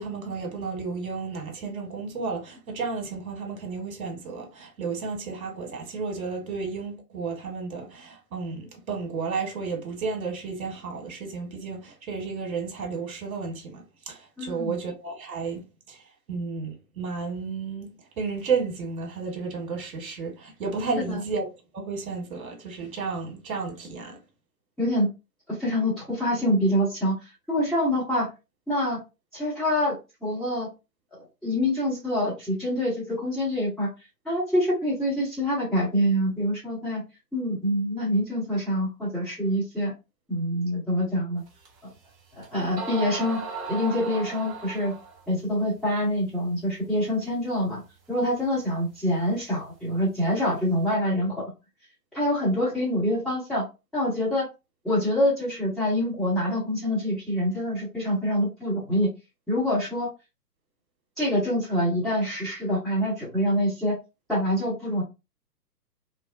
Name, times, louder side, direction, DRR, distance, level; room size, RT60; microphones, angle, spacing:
voice 1, 0.0-16.0 16.3-17.9 18.2-21.5 21.7-24.2, right 4 dB, 60° right, 1.1 m, -32 dB
voice 2, 14.4-14.7 21.1-21.2 24.8-25.1 25.6-27.2 27.5-28.3 28.7-29.0 29.3-30.7 31.4-33.9 34.2-37.0 37.3-39.9 40.3-41.4 42.4-43.4 43.7-44.9 45.3-47.8 48.1-51.3 52.1-53.6 53.9-54.4 54.8-59.1 59.5-60.1 61.2-63.9 64.3-65.0, equal, ahead, 0.7 m, -25 dB
sound 1, 41.7-41.8 42.4-42.5 42.8-45.2, right 4 dB, 35° right, 1.0 m, -35 dB
2.6 x 2.1 x 2.4 m
figure-of-eight pair, 125°, 49 cm